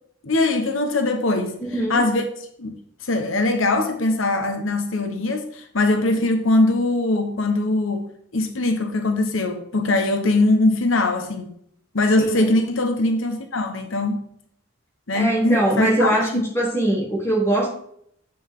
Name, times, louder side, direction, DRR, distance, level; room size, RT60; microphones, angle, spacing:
voice 1, 0.2-1.6 1.9-2.2 2.6-2.7 3.0-8.1 8.3-11.5 11.9-14.2 15.1-16.4, left 2 dB, 80° left, 1.1 m, -21 dB
voice 2, 1.6-2.0 12.2-12.4 15.1-16.3 16.5-17.7, right 1 dB, 15° left, 2.6 m, -21 dB
9.1 x 7.9 x 3.7 m
head